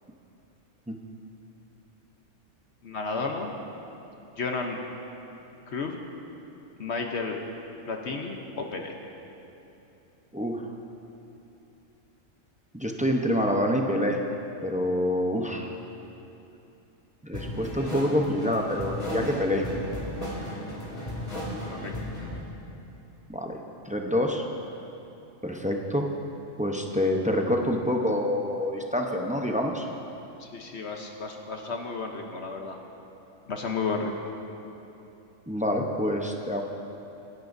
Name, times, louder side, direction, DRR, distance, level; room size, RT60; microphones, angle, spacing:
voice 1, 2.8-3.6 4.4-4.8 5.7-5.9 6.8-7.4 7.9-8.9 21.7-21.9 30.4-32.8 33.5-34.3, left 4 dB, 60° left, 2 dB, 1.1 m, -32 dB
voice 2, 12.7-14.2 14.6-15.7 17.2-19.7 23.3-23.6 23.9-24.4 25.4-26.1 26.6-29.9 35.5-36.6, left 1 dB, 10° right, 1 dB, 0.6 m, -26 dB
sound 1, 17.3-22.4, left 1 dB, 30° left, 2.7 m, -35 dB
25.0 x 11.0 x 2.7 m, 2.9 s
omnidirectional pair, 1.3 m